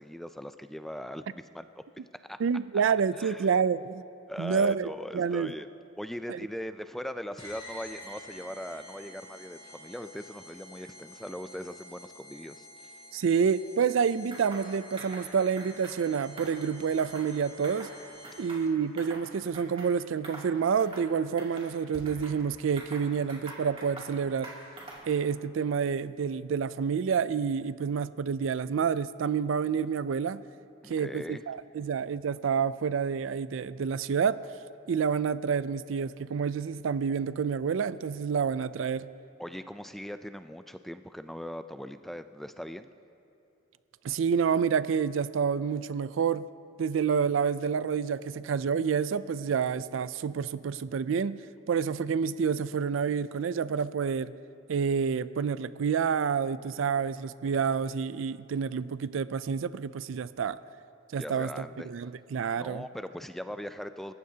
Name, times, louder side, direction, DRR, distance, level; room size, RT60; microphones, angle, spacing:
voice 1, 0.0-1.8 2.2-2.4 3.2-3.6 4.3-5.7 6.0-12.9 30.8-31.4 39.4-42.9 61.2-61.9 62.5-64.1, equal, ahead, 10 dB, 0.3 m, -40 dB
voice 2, 2.4-4.0 4.4-4.9 5.1-5.5 6.3-6.4 13.1-17.9 18.4-24.5 25.1-30.4 30.9-34.4 34.9-39.1 44.0-46.5 46.8-51.4 51.7-54.3 54.7-60.6 61.1-62.8, right 6 dB, 75° right, 16 dB, 0.4 m, -28 dB
sound 1, 7.4-18.8, equal, 30° left, 2.8 m, -49 dB
sound 2, 14.3-14.7 15.0-15.3 15.6-16.0 16.3-17.3 17.6-17.9 18.2-19.2 19.5-19.9 20.2-20.5 20.8-21.1 21.4-22.4 22.8-24.1 24.4-25.1, right 2 dB, 30° right, 2.7 m, -45 dB
28.5 x 15.0 x 2.8 m, 2.7 s
head